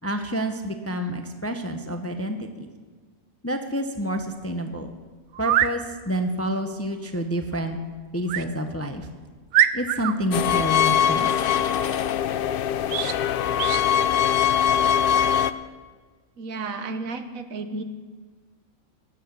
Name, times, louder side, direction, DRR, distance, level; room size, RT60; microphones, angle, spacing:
voice 1, 0.0-2.7 3.4-4.9 5.4-7.8 8.1-9.1 9.7-11.3, equal, 15° left, 6 dB, 0.6 m, -28 dB
sound 1, 4.4-4.5 5.3-5.8 8.3-8.5 9.0-9.1 9.5-10.2 12.9-13.2 13.6-13.8, right 11 dB, 85° right, 1.1 m, -23 dB
sound 2, 10.3-15.5, left 9 dB, 65° left, 0.5 m, -22 dB
voice 2, 16.4-17.8, right 3 dB, 70° right, 9 dB, 1.4 m, -32 dB
16.5 x 8.1 x 6.9 m, 1.5 s
omnidirectional pair, 1.5 m